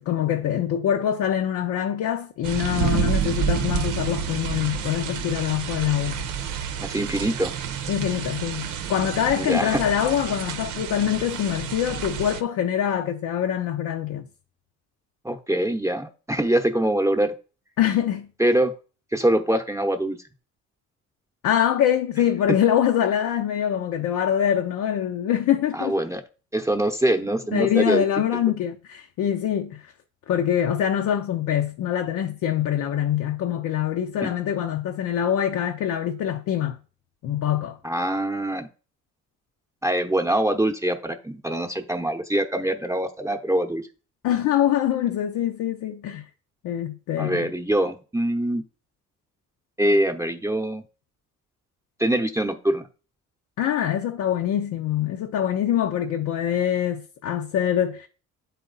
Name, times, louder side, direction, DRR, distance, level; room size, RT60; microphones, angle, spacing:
voice 1, 0.0-6.3 7.9-14.3 17.8-18.3 21.4-25.9 27.5-29.9 30.3-36.8 37.2-37.8 44.2-46.3 46.6-47.5 53.6-58.1, left 10 dB, 80° left, 0.7 m, -24 dB
sound 1, 2.4-12.4, right 8 dB, 85° right, 0.8 m, -29 dB
voice 2, 6.8-7.5 9.4-9.8 15.2-17.3 18.4-18.7 19.1-20.2 25.7-26.2 26.5-28.0 34.2-34.3 37.8-38.7 39.8-43.8 47.2-48.6 49.8-50.8 52.0-52.8, right 1 dB, 10° right, 0.8 m, -24 dB
9.2 x 4.2 x 3.9 m
cardioid pair, 90°, 30 cm